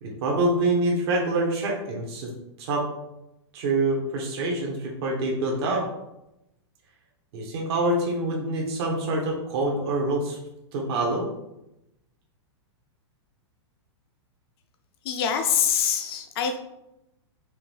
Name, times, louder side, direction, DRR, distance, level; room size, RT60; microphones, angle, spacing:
voice 1, 0.0-2.3 2.6-2.8 3.5-5.9 7.3-10.4 10.7-11.3, right 2 dB, 60° right, -1 dB, 1.1 m, -26 dB
voice 2, 15.0-16.6, left 8 dB, 55° left, 6 dB, 0.7 m, -24 dB
4.8 x 2.6 x 3.4 m, 0.87 s
hypercardioid pair, 135°, 15 cm